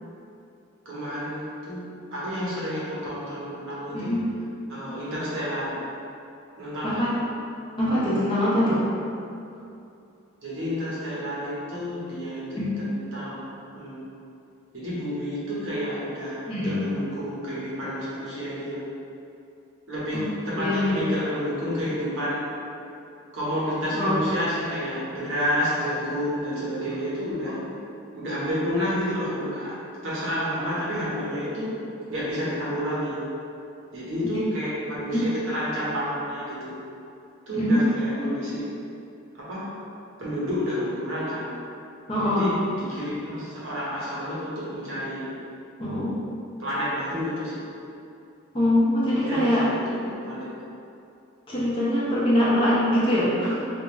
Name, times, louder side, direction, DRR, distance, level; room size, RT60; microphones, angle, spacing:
voice 1, 0.8-1.8 2.1-4.2 4.7-5.9 6.6-7.1 10.4-14.0 14.7-18.8 19.9-22.6 23.3-27.7 28.1-29.8 30.0-33.2 33.9-36.8 37.5-38.7 39.3-39.8 40.2-41.5 42.2-45.3 46.6-47.6 49.2-50.5, equal, 65° right, -8 dB, 1.0 m, -30 dB
voice 2, 7.8-8.8 12.6-12.7 16.5-16.8 20.1-20.3 20.5-21.0 24.0-24.2 27.5-27.6 34.3-34.4 35.1-35.2 37.6-37.9 38.2-38.3 42.1-42.4 45.8-46.2 48.5-49.6 51.5-53.6, left 1 dB, 25° left, -9 dB, 0.7 m, -23 dB
3.4 x 2.4 x 3.0 m, 2.6 s
head